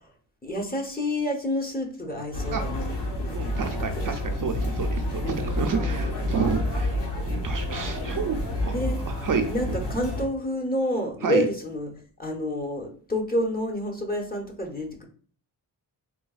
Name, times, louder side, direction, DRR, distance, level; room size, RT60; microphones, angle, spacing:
voice 1, 0.4-3.4 3.8-4.1 5.8-6.0 8.6-9.0 9.5-11.9 12.2-15.0, left 1 dB, 20° left, 1 dB, 0.9 m, -29 dB
sound 1, 2.3-10.2, left 1 dB, 75° left, 1.5 m, -29 dB
voice 2, 3.3-7.0 7.3-8.4 8.7-8.8 9.1-9.8 11.2-11.5, right 5 dB, 50° right, 4 dB, 0.5 m, -29 dB
4.0 x 2.3 x 2.3 m, 0.43 s
cardioid pair, 65°, 42 cm